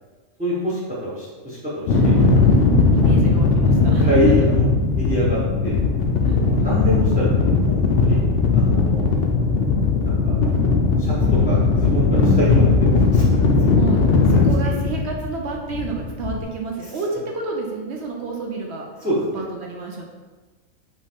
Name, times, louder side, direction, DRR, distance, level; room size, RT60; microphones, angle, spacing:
voice 1, 0.4-2.3 3.0-3.1 4.0-4.7 5.0-5.8 6.2-8.2 8.5-9.0 10.0-10.6 11.0-13.4 16.8-16.9 19.0-19.4, equal, 10° right, -7 dB, 0.5 m, -25 dB
sound 1, 1.9-16.4, left 4 dB, 60° left, 0.7 m, -18 dB
voice 2, 1.9-4.5 6.2-6.8 13.7-14.0 14.3-18.9 19.3-20.0, right 5 dB, 65° right, 0 dB, 0.7 m, -29 dB
5.5 x 2.5 x 3.4 m, 1.3 s
omnidirectional pair, 1.4 m